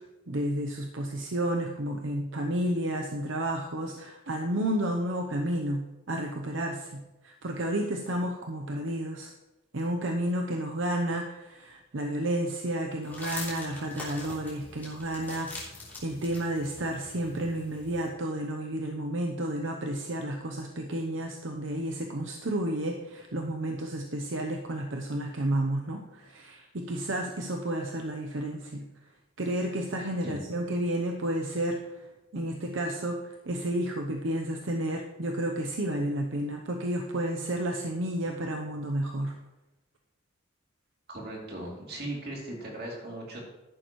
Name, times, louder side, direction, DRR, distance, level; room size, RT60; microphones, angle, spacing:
voice 1, 0.3-9.3 9.7-15.5 16.0-28.9 29.4-31.8 32.3-33.2 33.5-39.3, right 1 dB, 75° right, 2 dB, 0.8 m, -31 dB
sound 1, 13.0-18.1, left 2 dB, 10° left, 3.2 m, -43 dB
voice 2, 41.1-43.5, right 1 dB, 50° right, -2 dB, 3.0 m, -38 dB
13.5 x 11.0 x 3.1 m, 1.0 s
head